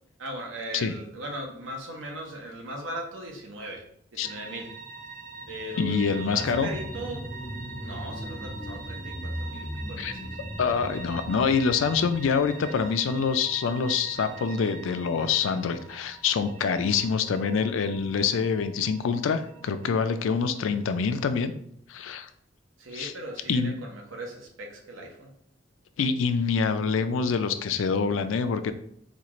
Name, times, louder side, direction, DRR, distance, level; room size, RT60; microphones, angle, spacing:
voice 1, 0.2-3.8 4.1-4.7 5.5-7.2 7.8-10.4 22.8-25.3, right 1 dB, 85° right, 0 dB, 0.9 m, -39 dB
sound 1, 4.2-21.2, right 4 dB, 40° right, 0.5 m, -44 dB
sound 2, 5.2-14.3 14.8-14.9, equal, 20° left, 0.5 m, -39 dB
voice 2, 5.8-6.7 10.0-10.1 10.6-21.5 21.9-22.3 22.9-23.1 23.5-23.7 26.0-28.7, left 5 dB, 85° left, 10 dB, 0.4 m, -26 dB
4.3 x 2.4 x 3.0 m, 0.67 s
head